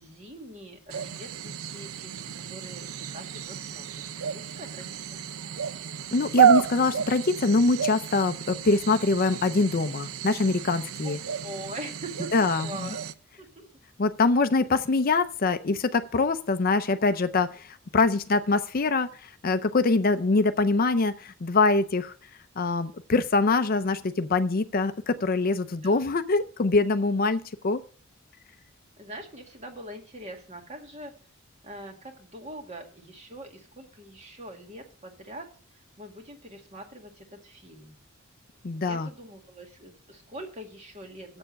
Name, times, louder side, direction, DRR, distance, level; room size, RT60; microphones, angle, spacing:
voice 1, 0.0-5.2 11.0-13.0 13.4-13.7 25.8-26.0 29.0-31.1 31.6-35.5 36.0-37.9 38.9-41.4, right 1 dB, 30° right, 3 dB, 1.9 m, -43 dB
sound 1, 0.9-13.1, right 8 dB, 80° right, 0.5 m, -30 dB
voice 2, 6.1-11.2 12.3-12.9 14.0-22.1 22.6-27.8 38.6-39.1, left 3 dB, 45° left, 11 dB, 0.5 m, -24 dB
7.8 x 6.9 x 7.4 m, 0.42 s
head